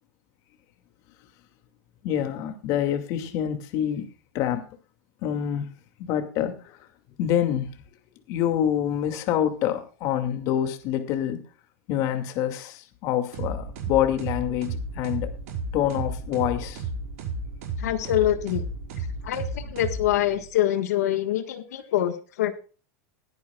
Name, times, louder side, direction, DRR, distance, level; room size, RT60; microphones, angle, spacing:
voice 1, 2.0-4.1 4.3-4.7 5.2-5.7 6.0-6.8 7.2-7.8 8.3-11.4 11.9-15.3 15.7-16.8, left 10 dB, 45° left, 2.3 m, -26 dB
sound 1, 13.3-20.5, right 3 dB, 65° right, 5.8 m, -33 dB
voice 2, 17.8-18.7 19.2-22.5, left 12 dB, 90° left, 1.5 m, -25 dB
21.0 x 9.6 x 2.4 m
supercardioid pair, 155°, 8 cm